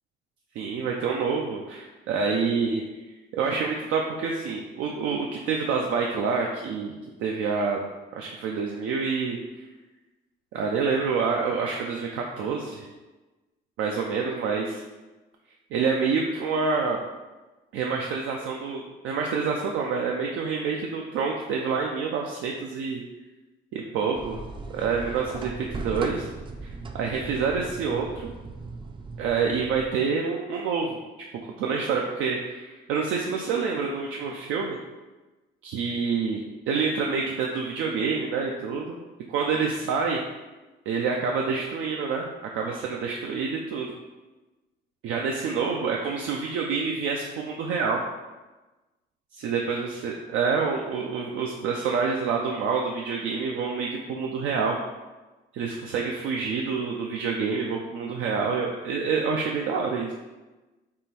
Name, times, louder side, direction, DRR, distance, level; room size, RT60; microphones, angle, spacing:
voice 1, 0.6-2.8 3.3-6.9 7.2-7.8 8.1-9.4 10.5-12.9 13.8-14.8 15.7-17.0 17.7-23.0 23.7-24.4 24.7-26.3 26.6-28.3 29.2-31.0 31.6-34.8 35.6-39.0 39.3-40.2 40.9-43.9 45.0-48.0 49.3-54.8 55.5-60.1, right 5 dB, 90° right, 0 dB, 0.4 m, -27 dB
sound 1, 24.1-29.9, right 3 dB, 25° right, 0.4 m, -38 dB
3.6 x 2.5 x 4.1 m, 1.2 s
cardioid pair, 90°, 20 cm